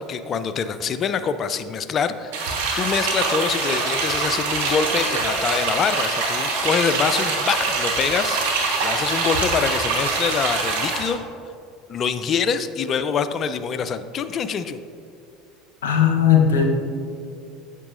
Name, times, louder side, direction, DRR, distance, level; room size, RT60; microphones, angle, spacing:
voice 1, 0.0-8.4 8.8-11.2 11.9-14.8, left 6 dB, 40° left, 12 dB, 0.4 m, -25 dB
sound 1, 2.3-11.1, right 3 dB, 70° right, 1.2 m, -24 dB
voice 2, 15.8-16.6, left 8 dB, 80° left, 2 dB, 0.8 m, -17 dB
8.2 x 7.0 x 2.5 m, 2.4 s
hypercardioid pair, 75°, 0 cm